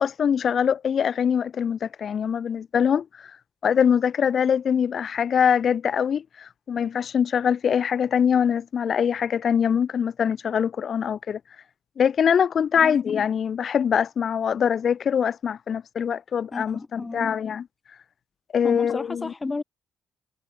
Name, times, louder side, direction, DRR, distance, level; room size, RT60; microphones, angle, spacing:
voice 1, 0.0-3.3 3.6-11.4 12.0-17.6 18.5-19.3, left 7 dB, 55° left, 2.4 m, -23 dB
voice 2, 16.5-17.3 18.6-19.6, left 3 dB, 25° left, 6.5 m, -32 dB
cardioid pair, 90°, 0 cm